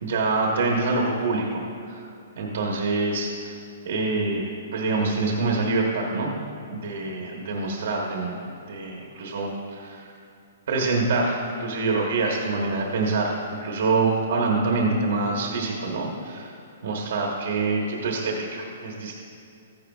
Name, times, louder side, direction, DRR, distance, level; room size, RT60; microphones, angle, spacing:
voice 1, 0.0-1.6 1.9-2.1 2.4-3.6 3.8-6.3 6.7-8.3 8.7-10.0 10.7-13.3 13.6-16.6 16.8-19.1, right 3 dB, 70° right, -1 dB, 1.2 m, -25 dB
14.0 x 10.5 x 2.4 m, 2.5 s
hypercardioid pair, 155°, 0 cm